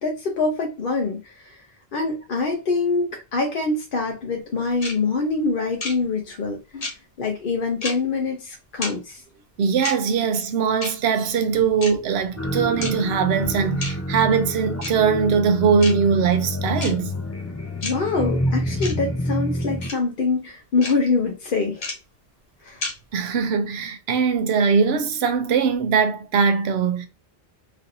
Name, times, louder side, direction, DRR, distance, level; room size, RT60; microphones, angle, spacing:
voice 1, 0.0-1.6 1.9-6.9 7.2-9.2 17.8-21.9 22.6-22.8, left 4 dB, 60° left, 0.8 m, -25 dB
sound 1, 4.8-4.9 5.8-5.9 6.8-6.9 7.8-7.9 8.8-8.9 9.8-9.9 10.8-10.9 11.8-11.9 12.8-12.9 13.8-13.9 14.8-14.9 15.8-15.9 16.8-16.9 17.8-17.9 18.8-18.9 19.8-19.9 20.8-20.9 21.8-21.9 22.8-22.9, left 2 dB, 80° left, 1.3 m, -29 dB
voice 2, 9.6-17.1 23.1-27.1, right 6 dB, 80° right, 0.8 m, -21 dB
sound 2, 12.4-19.9, left 1 dB, 25° left, 0.3 m, -28 dB
3.1 x 2.7 x 2.5 m
omnidirectional pair, 1.1 m